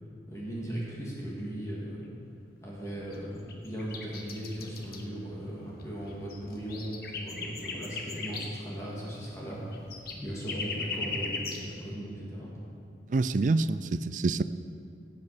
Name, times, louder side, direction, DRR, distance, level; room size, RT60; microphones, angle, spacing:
voice 1, 0.3-2.0 2.6-12.5, right 1 dB, 15° left, -6 dB, 2.4 m, -38 dB
sound 1, 2.9-3.2 3.5-5.0 5.8-5.9 6.1-8.5 9.2-9.3 9.5-11.6, left 4 dB, 55° left, 1.3 m, -37 dB
voice 2, 13.1-14.4, right 3 dB, 45° right, 14 dB, 0.4 m, -26 dB
16.5 x 8.6 x 5.1 m, 2.4 s
head